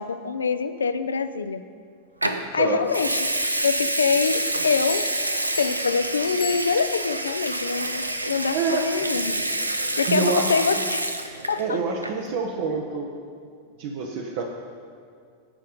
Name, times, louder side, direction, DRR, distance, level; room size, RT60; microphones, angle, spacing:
voice 1, 0.0-1.6 2.5-3.3 3.6-5.1 5.6-9.4 10.0-11.1 11.5-11.8, left 5 dB, 70° left, 12 dB, 0.5 m, -25 dB
Water tap faucet / Sink (filling or washing) / Liquid, 2.2-2.4 2.9-11.7 11.9-12.3, right 1 dB, 85° right, 0.6 m, -27 dB
Bell, 4.9-7.3, left 6 dB, 25° left, 0.7 m, -41 dB
voice 2, 8.5-8.9 10.0-10.5 11.6-13.1 13.8-14.4, right 5 dB, 50° right, 2 dB, 0.9 m, -26 dB
16.5 x 5.6 x 5.1 m, 2.2 s
figure-of-eight pair, 90°, 0 cm